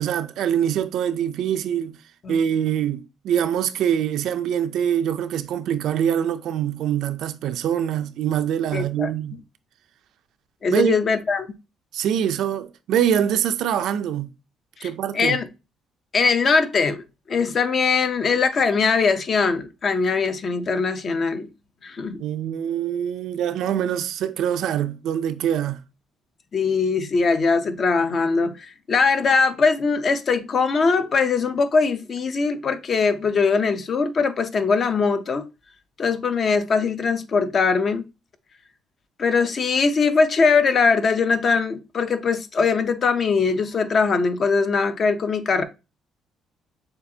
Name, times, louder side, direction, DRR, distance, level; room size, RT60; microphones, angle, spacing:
voice 1, 0.0-2.0 2.3-9.4 10.7-11.0 11.9-14.3 14.8-15.4 22.2-25.8, right 9 dB, 70° right, 0.4 m, -24 dB
voice 2, 8.7-9.1 10.6-11.5 14.8-15.5 16.1-17.0 17.3-21.5 21.8-22.2 26.5-35.4 36.0-38.0 39.2-45.6, left 4 dB, 40° left, 0.6 m, -21 dB
6.6 x 2.4 x 2.7 m
cardioid pair, 125°, 0 cm